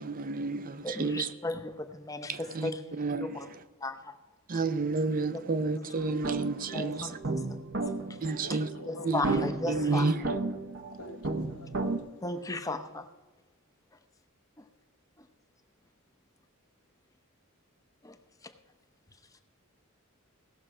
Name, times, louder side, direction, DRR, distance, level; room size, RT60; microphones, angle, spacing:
voice 1, 0.0-1.3 2.3-3.4 4.5-7.2 8.2-8.7 9.0-10.2, right 3 dB, 40° right, 13 dB, 0.5 m, -31 dB
voice 2, 0.8-3.5 3.8-4.1 6.7-7.4 8.9-10.1 12.2-13.1 18.0-18.2, left 2 dB, 15° left, 8 dB, 0.7 m, -35 dB
sound 1, 6.0-12.0, right 2 dB, 55° right, 0.9 m, -34 dB
voice 3, 8.4-9.2 9.6-9.7 10.7-12.2, left 2 dB, 70° left, 8 dB, 1.0 m, -48 dB
17.0 x 6.7 x 4.8 m, 1.2 s
head